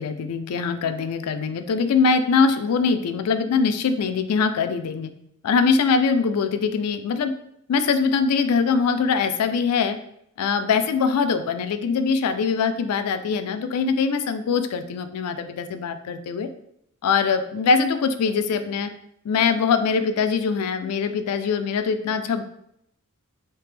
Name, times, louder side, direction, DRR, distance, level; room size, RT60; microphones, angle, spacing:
voice 1, 0.0-5.1 5.4-7.3 7.7-10.0 10.4-16.5 17.0-18.9 19.2-22.4, left 5 dB, 85° left, 10 dB, 0.4 m, -22 dB
3.4 x 2.8 x 3.2 m, 0.74 s
head